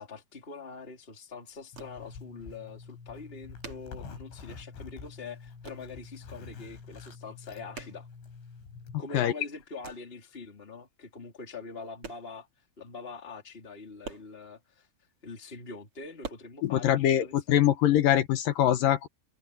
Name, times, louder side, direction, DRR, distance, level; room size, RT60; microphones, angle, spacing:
voice 1, 0.0-8.1 9.0-14.9 15.2-17.6, left 4 dB, 15° left, 3.4 m, -44 dB
sound 1, 1.2-2.3 2.7-2.8 3.0-4.8 5.0-6.0 6.3-6.8 7.1-8.8 9.2-10.2 11.0-11.1 11.6-12.6 12.8-12.9 13.2-13.3 13.6-15.0 15.5-16.3, right 5 dB, 35° right, 2.7 m, -47 dB
Zipper (clothing), 1.7-9.0, left 5 dB, 90° left, 8.3 m, -46 dB
voice 2, 16.6-19.1, left 11 dB, 75° left, 2.1 m, -23 dB
omnidirectional pair, 5.3 m